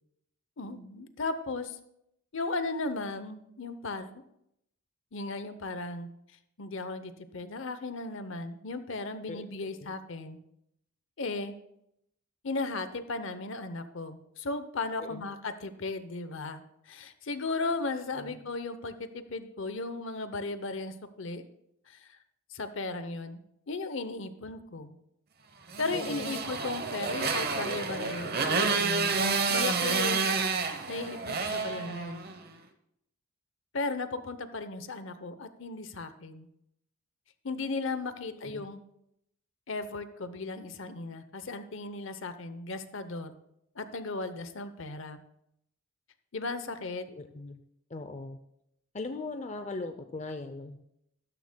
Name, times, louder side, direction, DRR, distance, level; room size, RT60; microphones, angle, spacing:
voice 1, 0.6-1.8 2.3-4.1 5.1-6.1 6.6-10.4 11.2-11.5 12.4-21.4 21.9-22.1 22.5-23.4 23.7-25.0 25.8-30.3 30.9-32.3 33.7-36.5 37.4-38.8 39.7-43.3 43.8-45.2 46.3-47.1, left 3 dB, 60° left, 11 dB, 0.7 m, -36 dB
Motorcycle, 25.7-32.4, right 4 dB, 45° right, 0.9 m, -29 dB
voice 2, 25.9-26.4 38.4-38.7 47.1-47.6 47.9-48.4 48.9-50.8, left 3 dB, 30° left, 8 dB, 0.4 m, -39 dB
13.0 x 13.0 x 2.2 m, 0.78 s
head